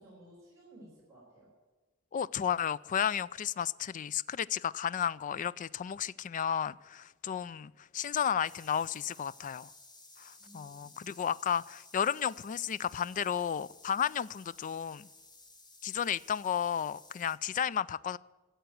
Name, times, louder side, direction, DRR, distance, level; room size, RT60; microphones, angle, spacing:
voice 1, 0.0-1.5 10.4-10.9, right 1 dB, 15° right, 5.2 m, -56 dB
voice 2, 2.1-9.7 10.2-15.1 15.8-18.2, left 8 dB, 40° left, 0.3 m, -33 dB
sound 1, 8.4-17.4, left 3 dB, 20° left, 1.5 m, -56 dB
13.5 x 8.1 x 9.3 m
head